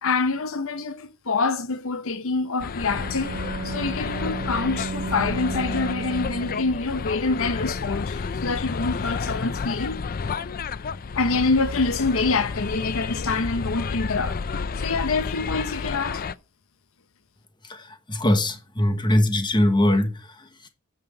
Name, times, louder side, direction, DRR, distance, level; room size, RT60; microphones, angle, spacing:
voice 1, 0.0-10.0 11.1-16.2, left 3 dB, 65° left, 0.8 m, -26 dB
sound 1, 2.6-16.3, left 5 dB, 40° left, 0.4 m, -31 dB
Bowed string instrument, 2.9-7.0, right 3 dB, 55° right, 0.7 m, -34 dB
voice 2, 17.6-20.7, left 1 dB, 20° left, 1.2 m, -22 dB
8.9 x 5.9 x 5.4 m
head